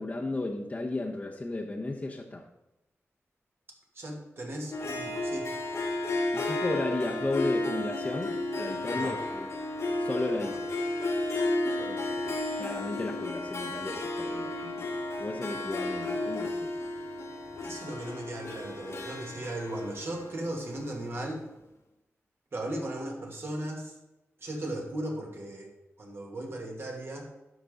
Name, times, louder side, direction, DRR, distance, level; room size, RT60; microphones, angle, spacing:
voice 1, 0.0-2.5 6.3-9.5 10.0-10.6 12.6-14.9 15.2-16.8, left 2 dB, 30° left, -2 dB, 1.0 m, -34 dB
voice 2, 3.9-5.5 8.9-9.2 10.4-10.6 11.8-12.3 17.6-21.4 22.5-23.9 24.4-25.7 26.0-27.3, right 1 dB, 50° right, 0 dB, 2.3 m, -37 dB
Harp, 4.7-21.2, left 2 dB, 70° left, 1.5 m, -33 dB
12.0 x 5.3 x 3.9 m, 0.95 s
cardioid pair, 70°, 5 cm